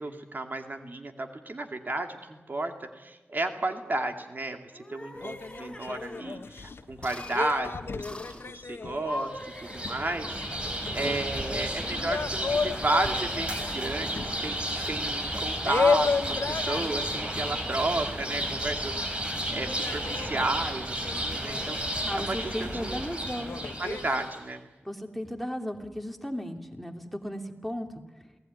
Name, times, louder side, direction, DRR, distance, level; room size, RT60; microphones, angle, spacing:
voice 1, 0.0-19.2 19.5-23.1 23.8-24.6, right 2 dB, 50° right, 5 dB, 2.4 m, -33 dB
sound 1, 4.7-6.4 7.0-7.4 8.0-8.5 8.9-10.7, left 1 dB, 20° left, 6.1 m, -41 dB
sound 2, 5.2-18.9 19.2-24.3, left 5 dB, 75° left, 1.1 m, -34 dB
sound 3, 9.3-24.4, right 1 dB, 25° right, 4.8 m, -33 dB
voice 2, 22.0-23.6 24.8-27.9, equal, ahead, 3 dB, 2.9 m, -35 dB
28.0 x 18.5 x 9.5 m, 1.1 s
wide cardioid pair, 70°, 4 cm